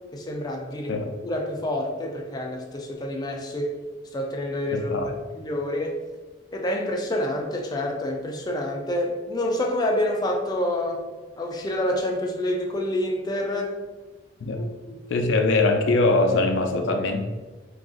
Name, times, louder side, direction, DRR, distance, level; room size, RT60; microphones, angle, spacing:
voice 1, 0.1-3.8 4.1-4.9 5.3-6.0 6.5-11.0 11.4-13.8 14.5-15.1, left 1 dB, 20° left, 1 dB, 0.4 m, -28 dB
voice 2, 4.7-5.1 14.4-14.6 15.1-17.2, left 2 dB, 85° left, 4 dB, 0.4 m, -22 dB
2.4 x 2.4 x 3.6 m, 1.3 s
head